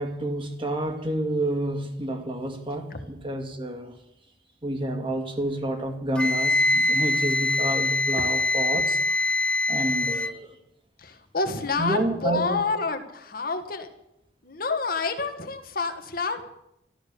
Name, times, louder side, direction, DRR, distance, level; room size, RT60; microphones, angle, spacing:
voice 1, 0.0-3.9 4.6-9.3 9.7-10.5 11.8-12.6, right 1 dB, 30° right, 5 dB, 2.0 m, -29 dB
Wind instrument woodwind instrument, 6.2-10.4, left 2 dB, 5° left, 0.5 m, -24 dB
voice 2, 11.0-13.9 14.4-16.4, left 4 dB, 55° left, 6 dB, 1.6 m, -28 dB
13.5 x 13.0 x 6.7 m, 0.83 s
head